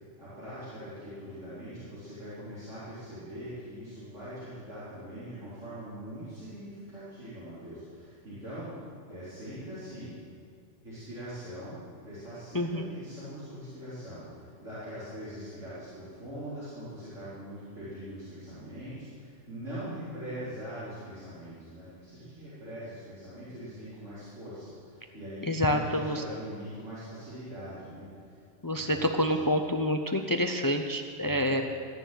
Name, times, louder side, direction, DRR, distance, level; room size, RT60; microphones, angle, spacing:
voice 1, 0.0-8.7 9.1-10.1 10.8-11.8 12.0-28.4 28.7-29.5 31.2-31.6, equal, 85° right, -14 dB, 4.8 m, -42 dB
voice 2, 12.5-12.9 25.5-26.2 28.6-31.6, left 1 dB, 25° left, 5 dB, 0.5 m, -27 dB
16.0 x 6.9 x 9.3 m, 2.4 s
omnidirectional pair, 1.2 m